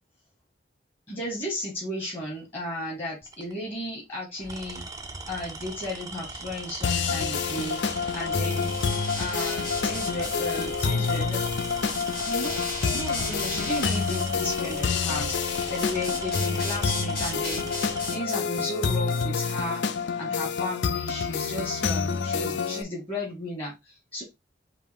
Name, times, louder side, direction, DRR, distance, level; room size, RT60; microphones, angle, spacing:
voice 1, 1.1-4.8 5.3-7.8 8.1-8.7 9.2-11.5 12.3-12.6 12.9-17.7 18.1-19.8 20.2-24.2, left 1 dB, 30° left, -5 dB, 1.7 m, -34 dB
Tools, 3.2-3.5 4.4-18.2, right 3 dB, 20° right, 0.5 m, -39 dB
sound 1, 6.8-22.8, left 5 dB, 75° left, 0.5 m, -28 dB
sound 2, 8.5-19.5, left 3 dB, 55° left, 2.2 m, -37 dB
5.1 x 2.7 x 3.5 m, 0.21 s
head